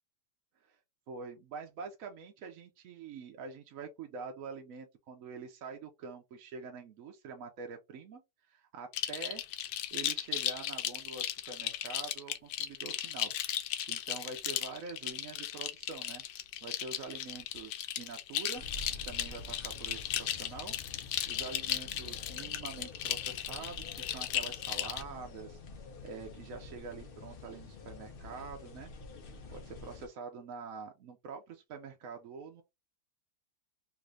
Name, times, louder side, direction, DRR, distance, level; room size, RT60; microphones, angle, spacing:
voice 1, 1.1-8.2 8.5-9.4 9.9-16.2 16.6-18.6 18.9-20.8 21.3-25.6 26.0-28.9 29.5-32.6, right 4 dB, 65° right, 0.9 m, -45 dB
sound 1, 8.9-25.0, left 11 dB, 85° left, 1.2 m, -36 dB
sound 2, 18.6-30.1, left 3 dB, 65° left, 0.5 m, -48 dB
3.2 x 2.5 x 3.1 m
omnidirectional pair, 1.8 m